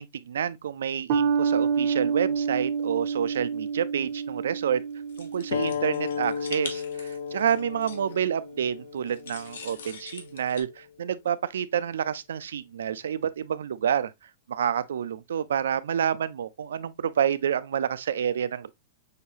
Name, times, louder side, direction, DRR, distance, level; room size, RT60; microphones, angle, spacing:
voice 1, 0.0-4.8 5.2-14.1 14.5-18.7, right 8 dB, 90° right, 0.4 m, -28 dB
sound 1, 1.1-7.8, right 6 dB, 35° right, 0.6 m, -29 dB
sound 2, 5.1-8.2 9.0-10.6, left 5 dB, 90° left, 1.3 m, -42 dB
sound 3, 5.5-10.6, left 7 dB, 65° left, 0.5 m, -34 dB
6.5 x 2.7 x 2.8 m
supercardioid pair, 175°, 0 cm